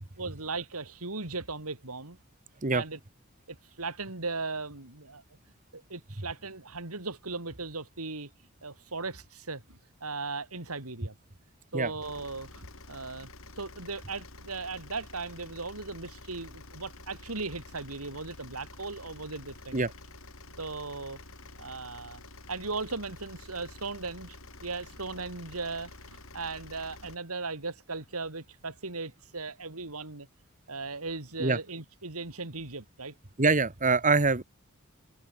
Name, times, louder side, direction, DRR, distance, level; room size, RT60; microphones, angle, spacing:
voice 1, 0.2-2.2 2.7-3.0 3.5-5.2 5.7-8.3 8.6-11.2 11.7-13.3 13.6-19.9 20.6-21.2 21.6-22.2 22.5-30.3 30.7-33.1, right 3 dB, 85° right, 3.6 m, -37 dB
sound 1, 12.0-27.2, left 2 dB, 65° left, 6.3 m, -49 dB
voice 2, 33.4-34.4, right 3 dB, 35° right, 1.5 m, -24 dB
open air
head